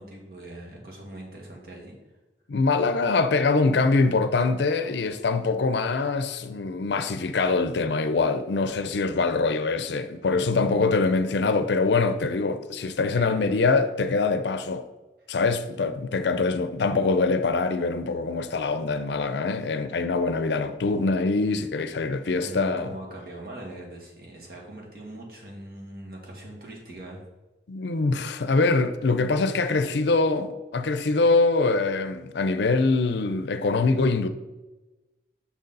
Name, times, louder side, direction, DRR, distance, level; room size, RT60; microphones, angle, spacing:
voice 1, 0.0-2.0 10.6-10.8 13.0-13.4 22.4-27.3, right 1 dB, 55° right, 1.8 m, -41 dB
voice 2, 2.5-14.8 15.3-22.9 27.7-34.3, left 3 dB, 75° left, 0.5 m, -24 dB
6.6 x 6.0 x 4.0 m
head